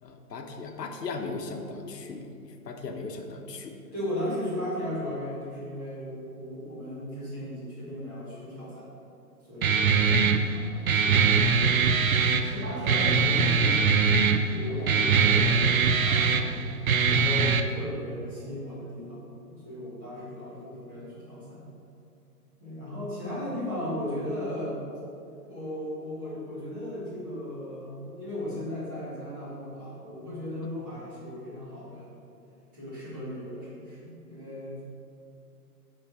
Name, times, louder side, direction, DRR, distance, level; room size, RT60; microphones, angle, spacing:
voice 1, 0.0-3.8 10.8-10.9, left 3 dB, 75° left, 4 dB, 1.1 m, -37 dB
voice 2, 3.9-8.9 9.5-10.1 10.5-15.5 16.0-16.8 17.1-21.6 22.6-24.8 25.5-32.1 32.7-34.8, left 1 dB, 10° right, -10 dB, 1.3 m, -36 dB
Guitar, 9.6-17.6, right 5 dB, 60° right, 0.6 m, -22 dB
8.7 x 3.9 x 5.9 m, 2.6 s
hypercardioid pair, 180°, 49 cm